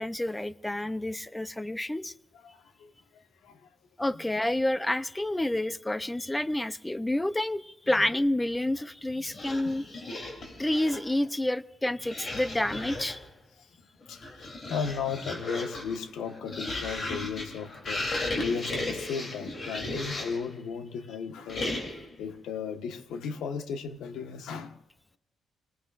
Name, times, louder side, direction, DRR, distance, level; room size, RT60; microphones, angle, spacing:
voice 1, 0.0-2.1 4.0-9.8 10.6-13.2, left 1 dB, 10° left, 0.6 m, -29 dB
voice 2, 2.4-3.6 9.2-9.3 14.1-18.1 18.4-21.7 22.2-24.8, left 6 dB, 80° left, 1.3 m, -35 dB
sound 1, 9.2-11.2 12.0-13.3 14.0-20.5 21.5-22.2, left 2 dB, 40° left, 3.1 m, -36 dB
27.5 x 19.5 x 2.5 m
cardioid pair, 90°, 0 cm